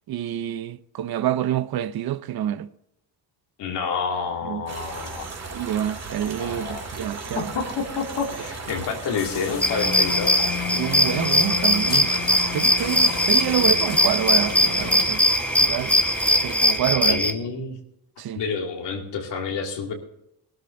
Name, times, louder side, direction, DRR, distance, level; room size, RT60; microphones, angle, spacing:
voice 1, 0.1-2.7 4.4-4.6 5.5-7.5 10.8-12.1 12.5-15.2 15.6-16.0 16.4-17.2 18.2-18.4, right 11 dB, 60° right, 0.7 m, -27 dB
voice 2, 3.6-5.3 6.4-6.9 7.3-10.3 17.0-17.8 18.3-19.9, left 5 dB, 80° left, 2.5 m, -29 dB
sound 1, 4.7-16.8, right 4 dB, 40° right, 2.4 m, -36 dB
sound 2, 9.2-15.0, left 9 dB, 55° left, 1.1 m, -33 dB
sound 3, 9.6-17.3, left 1 dB, 5° left, 1.2 m, -21 dB
19.0 x 13.0 x 2.6 m
cardioid pair, 100°, 41 cm